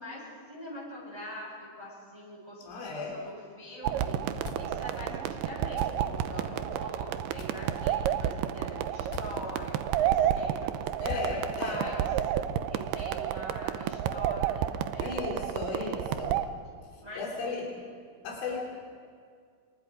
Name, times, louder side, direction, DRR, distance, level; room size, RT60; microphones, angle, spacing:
voice 1, 0.0-12.0 12.3-12.4 12.7-16.3 17.0-17.5 18.5-18.6, equal, 10° right, -6 dB, 7.1 m, -44 dB
voice 2, 2.6-3.2 11.0-11.9 15.0-16.4 17.2-17.8 18.2-18.6, left 3 dB, 85° left, -1 dB, 6.2 m, -35 dB
sound 1, 3.8-16.5, right 10 dB, 80° right, 2.4 m, -31 dB
sound 2, 4.1-9.8 10.2-10.3 10.5-10.6 11.1-13.2, left 6 dB, 70° left, 4.4 m, -47 dB
27.5 x 25.5 x 5.1 m, 2.1 s
omnidirectional pair, 5.4 m